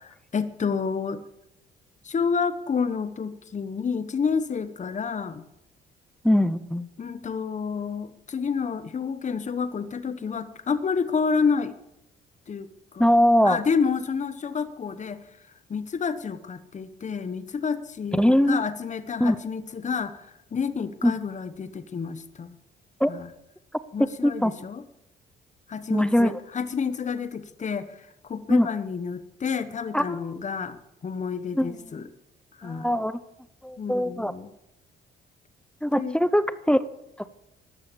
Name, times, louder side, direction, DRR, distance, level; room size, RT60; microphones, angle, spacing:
voice 1, 0.0-1.2 2.0-5.4 7.0-11.7 12.5-13.1 13.4-15.3 15.7-22.6 23.1-23.3 23.9-24.8 25.7-32.1 32.6-32.9 33.8-34.5 35.9-36.2, left 5 dB, 35° left, 12 dB, 1.1 m, -29 dB
voice 2, 6.2-6.9 13.0-13.6 18.2-18.6 19.2-19.4 21.0-21.1 23.0-23.1 24.2-24.5 25.9-26.3 28.5-28.7 29.9-30.2 31.6-31.7 32.6-33.2 33.6-34.3 35.8-36.8 37.2-37.3, equal, 5° left, 14 dB, 0.7 m, -21 dB
14.0 x 11.5 x 7.0 m, 0.82 s
cardioid pair, 90°, 20 cm